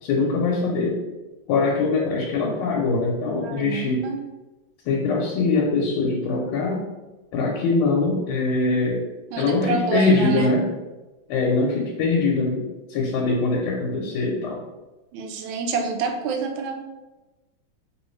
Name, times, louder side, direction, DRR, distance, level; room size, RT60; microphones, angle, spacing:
voice 1, 0.0-1.0 1.5-4.1 4.8-6.9 7.3-9.0 9.4-10.7 11.3-14.6, left 3 dB, 90° left, -2 dB, 1.5 m, -22 dB
voice 2, 3.4-4.2 9.3-10.5 15.1-16.7, right 5 dB, 80° right, 4 dB, 1.3 m, -27 dB
3.2 x 3.0 x 3.1 m, 1.1 s
omnidirectional pair, 2.3 m